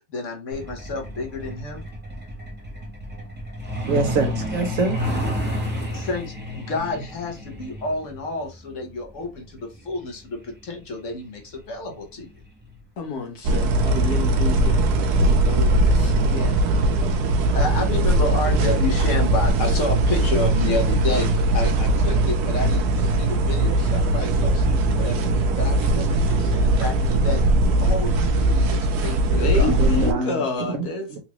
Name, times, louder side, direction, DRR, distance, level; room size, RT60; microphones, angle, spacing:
voice 1, 0.0-1.8 5.9-12.3 17.4-27.4 27.8-29.8, left 2 dB, 60° left, 1.1 m, -30 dB
Truck, 0.5-12.8 14.0-14.2 14.6-14.8 15.1-15.4 15.8-15.9 16.3-16.4, equal, 10° right, 0.8 m, -31 dB
voice 2, 3.9-5.0 29.8-30.4 30.8-31.2, right 4 dB, 60° right, 1.1 m, -25 dB
voice 3, 13.0-14.9 15.2-16.6 29.4-31.1, left 3 dB, 75° left, 1.5 m, -29 dB
sound 1, 13.4-30.1, right 1 dB, 90° right, 1.2 m, -20 dB
3.9 x 2.4 x 3.0 m
omnidirectional pair, 1.7 m